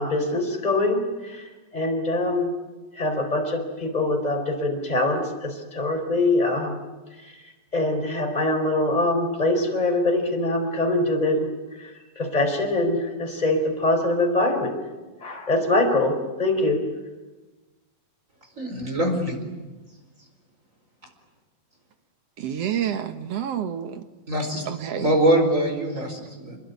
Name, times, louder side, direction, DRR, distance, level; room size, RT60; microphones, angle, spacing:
voice 1, 0.0-2.5 3.0-6.8 7.7-11.5 11.8-14.8 15.2-16.8, left 2 dB, 10° left, 4.2 m, -23 dB
voice 2, 18.6-19.4 24.3-24.6 25.0-26.6, right 1 dB, 20° right, 4.7 m, -23 dB
voice 3, 22.4-24.0 24.7-25.1, right 9 dB, 60° right, 1.9 m, -29 dB
28.0 x 21.5 x 9.7 m
omnidirectional pair, 3.9 m